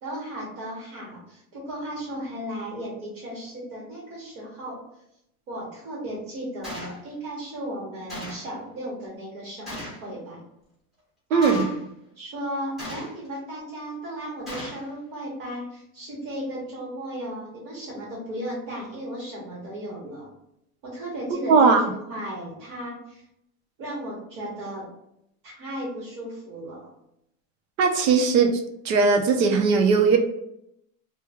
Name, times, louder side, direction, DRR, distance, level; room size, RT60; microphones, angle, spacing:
voice 1, 0.0-4.8 5.5-10.4 11.3-11.7 12.2-20.3 20.8-23.2 23.8-24.9 25.4-26.9, right 1 dB, 50° right, -4 dB, 1.2 m, -35 dB
Gunshot gunfire, 6.6-7.0 8.1-8.5 9.7-10.0 11.4-11.8 12.8-13.3 14.5-14.9, left 1 dB, ahead, 1.0 m, -37 dB
voice 2, 11.3-11.6 21.5-21.8 27.8-28.5 28.8-30.2, right 5 dB, 70° right, 4 dB, 0.7 m, -18 dB
3.1 x 2.2 x 3.4 m, 0.78 s
supercardioid pair, 175°, 41 cm